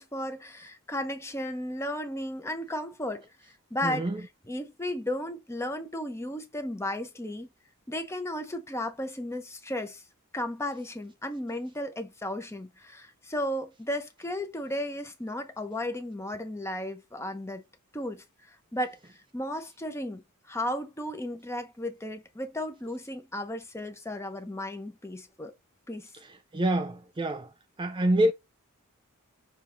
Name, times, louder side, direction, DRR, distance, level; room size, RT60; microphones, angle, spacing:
voice 1, 0.0-3.3 3.7-4.1 4.5-7.5 7.9-10.0 10.3-17.6 17.9-19.0 19.3-25.5 25.9-26.1, left 1 dB, 10° left, 1.0 m, -34 dB
voice 2, 3.8-4.2 26.5-27.5 27.8-28.3, right 1 dB, 20° right, 0.5 m, -26 dB
6.7 x 3.4 x 4.3 m
head